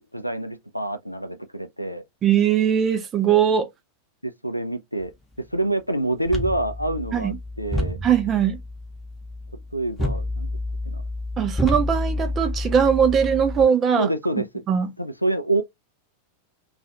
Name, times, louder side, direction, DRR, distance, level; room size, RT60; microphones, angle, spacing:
voice 1, 0.0-2.0 4.2-5.1 5.4-8.0 9.7-10.5 10.9-11.0 14.0-14.6 15.0-15.6, right 2 dB, 90° left, 0.3 m, -27 dB
voice 2, 2.2-3.7 7.1-7.4 8.0-8.6 11.4-14.1 14.7-14.9, right 8 dB, 25° right, 0.6 m, -20 dB
sound 1, 6.2-13.7, left 1 dB, 10° left, 0.9 m, -29 dB
2.4 x 2.3 x 2.8 m
figure-of-eight pair, 90°, 0 cm